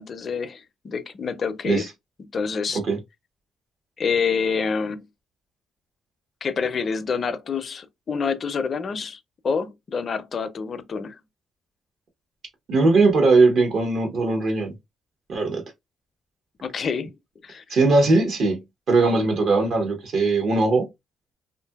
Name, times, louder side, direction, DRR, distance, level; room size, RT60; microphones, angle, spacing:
voice 1, 0.0-1.9 2.3-2.8 4.0-5.1 6.4-9.2 9.4-11.2 16.6-17.1 17.4-17.6, left 5 dB, 45° left, 0.4 m, -27 dB
voice 2, 12.7-14.7 15.3-15.6 17.7-18.6 18.9-20.9, right 3 dB, 65° right, 1.0 m, -19 dB
2.7 x 2.5 x 2.2 m
cardioid pair, 90°, 0 cm